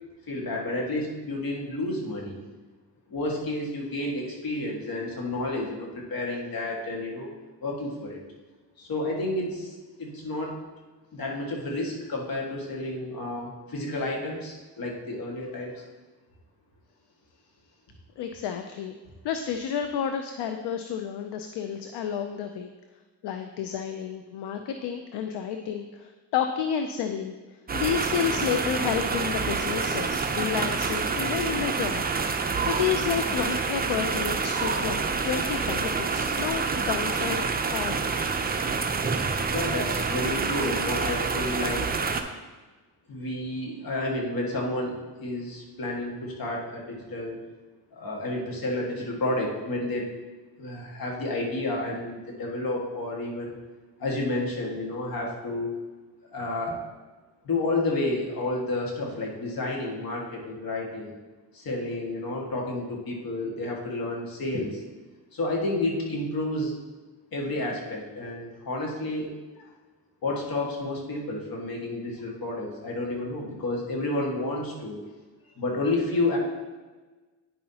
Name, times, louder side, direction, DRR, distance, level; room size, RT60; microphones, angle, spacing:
voice 1, 0.3-2.4 3.1-7.3 7.6-8.2 8.8-10.6 11.1-15.8 39.5-42.0 43.1-47.4 47.9-50.1 50.6-53.5 54.0-55.7 56.3-56.8 57.4-61.1 61.5-64.8 65.3-66.7 67.3-69.3 70.2-75.0 75.6-76.4, left 2 dB, 55° left, -1 dB, 1.8 m, -30 dB
voice 2, 18.2-18.9 19.2-22.7 23.2-27.3 27.7-38.0, left 8 dB, 75° left, 6 dB, 0.6 m, -30 dB
sound 1, 27.7-42.2, right 4 dB, 25° right, 0.6 m, -27 dB
9.8 x 5.5 x 2.9 m, 1.3 s
cardioid pair, 80°, 41 cm